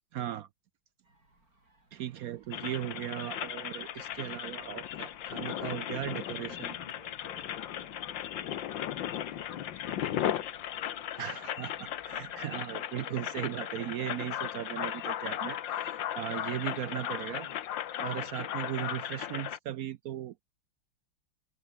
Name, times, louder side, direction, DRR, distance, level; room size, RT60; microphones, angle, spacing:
voice 1, 0.1-0.5 1.9-6.7 11.2-17.5 18.0-20.5, right 12 dB, 70° right, 0.8 m, -37 dB
sound 1, 1.0-19.6, right 2 dB, 50° right, 7.7 m, -65 dB
sound 2, 2.5-19.6, left 11 dB, 80° left, 1.7 m, -36 dB
voice 2, 6.1-11.8 17.2-17.7, right 2 dB, 20° right, 3.3 m, -58 dB
omnidirectional pair, 2.0 m